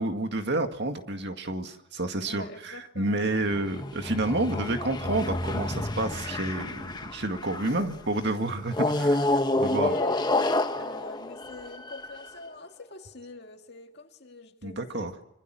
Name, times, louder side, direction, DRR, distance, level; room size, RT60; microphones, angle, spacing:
voice 1, 0.0-9.9 14.6-15.1, right 2 dB, 55° right, 6 dB, 2.1 m, -30 dB
voice 2, 2.3-3.3 7.5-7.9 9.5-10.3 10.8-15.1, left 3 dB, 50° left, 4 dB, 2.3 m, -43 dB
sound 1, 3.3-7.9 8.7-12.3, left 2 dB, 20° left, 1.0 m, -29 dB
26.0 x 25.0 x 7.8 m, 0.83 s
head